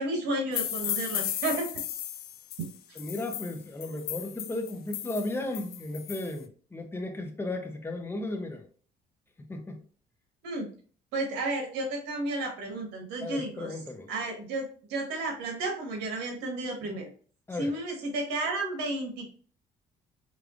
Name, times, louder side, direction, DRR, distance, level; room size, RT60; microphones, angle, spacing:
voice 1, 0.0-1.7 10.4-10.7 11.1-13.8 14.1-17.1 17.5-19.3, right 2 dB, 90° right, 1.6 m, -32 dB
sound 1, 0.5-6.3, left 11 dB, 65° left, 0.6 m, -35 dB
voice 2, 3.0-8.7 9.5-9.8 13.2-14.1 17.5-17.7, left 2 dB, 15° left, 0.9 m, -35 dB
4.9 x 3.3 x 2.5 m
cardioid pair, 110°, 17 cm